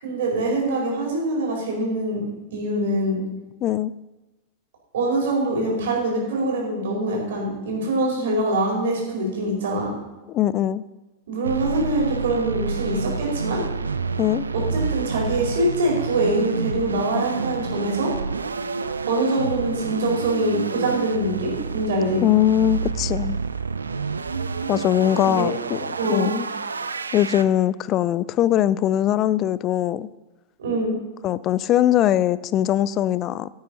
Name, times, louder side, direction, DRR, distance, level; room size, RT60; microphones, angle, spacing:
voice 1, 0.0-2.2 2.5-3.2 4.9-9.9 11.3-13.6 14.5-18.1 19.1-22.2 25.2-25.5 26.0-26.3 30.6-31.0, right 1 dB, 60° right, -1 dB, 4.6 m, -24 dB
voice 2, 3.6-3.9 10.3-10.8 14.2-14.4 22.2-23.4 24.7-26.5 27.1-30.1 31.2-33.5, left 12 dB, 35° left, 18 dB, 0.4 m, -21 dB
sound 1, 11.4-27.4, right 4 dB, 75° right, 0.6 m, -29 dB
15.5 x 8.9 x 4.1 m, 1.1 s
figure-of-eight pair, 90°, 0 cm